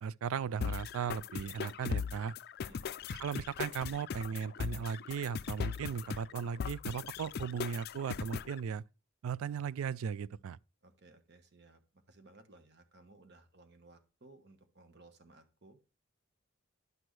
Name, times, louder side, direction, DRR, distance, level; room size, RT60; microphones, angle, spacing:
voice 1, 0.0-2.3 3.1-8.8 9.2-10.6, right 7 dB, 85° right, 0.3 m, -37 dB
sound 1, 0.6-8.6, left 6 dB, 50° left, 0.4 m, -39 dB
voice 2, 10.8-15.8, right 2 dB, 55° right, 1.2 m, -60 dB
10.5 x 6.1 x 3.2 m
head